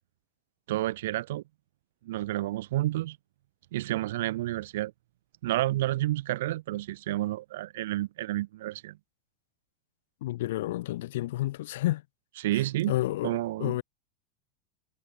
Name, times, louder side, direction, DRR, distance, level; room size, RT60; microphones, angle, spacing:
voice 1, 0.7-1.4 2.0-3.2 3.7-4.9 5.4-9.0 12.4-13.0 13.2-13.8, right 16 dB, 70° right, 1.5 m, -30 dB
voice 2, 10.2-12.0 12.9-13.8, left 16 dB, 70° left, 0.6 m, -30 dB
supercardioid pair, 160°, 0 cm